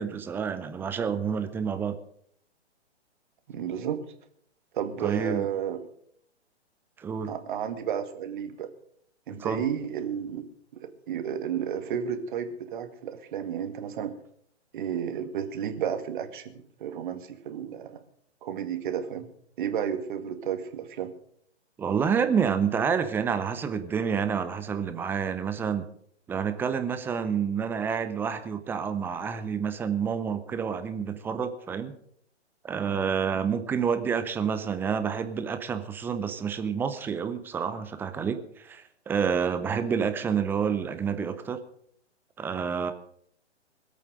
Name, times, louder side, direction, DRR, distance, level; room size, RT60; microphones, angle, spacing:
voice 1, 0.0-2.0 5.0-5.5 7.0-7.3 9.4-9.6 21.8-25.9 26.3-31.9 32.6-41.6 42.4-42.9, right 6 dB, 5° right, 10 dB, 0.6 m, -28 dB
voice 2, 3.5-4.0 4.7-5.8 7.3-8.7 9.3-10.4 10.7-14.1 14.7-18.0 18.4-19.3 19.6-21.1, right 8 dB, 45° right, 9 dB, 2.0 m, -32 dB
21.5 x 8.5 x 6.5 m, 0.66 s
figure-of-eight pair, 125°, 35 cm